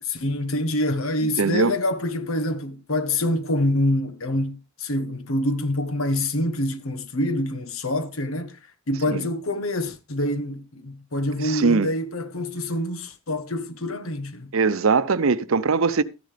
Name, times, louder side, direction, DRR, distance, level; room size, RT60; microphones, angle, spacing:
voice 1, 0.0-8.6 8.9-14.5, left 1 dB, 80° left, 1.3 m, -26 dB
voice 2, 1.2-1.8 9.1-9.3 11.4-11.9 14.5-16.0, right 4 dB, 75° right, 0.7 m, -21 dB
13.5 x 10.5 x 3.4 m
head